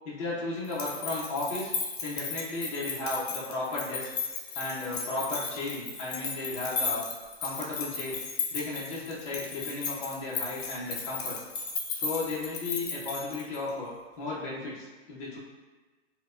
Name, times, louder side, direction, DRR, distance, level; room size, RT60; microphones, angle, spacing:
voice 1, 0.0-1.7 2.0-4.1 4.5-7.1 7.4-8.2 8.5-11.4 11.9-15.4, left 2 dB, 25° left, -5 dB, 0.7 m, -34 dB
sound 1, 0.6-13.7, left 5 dB, 60° left, 0.8 m, -35 dB
4.5 x 2.2 x 2.4 m, 1.3 s
hypercardioid pair, 170°, 36 cm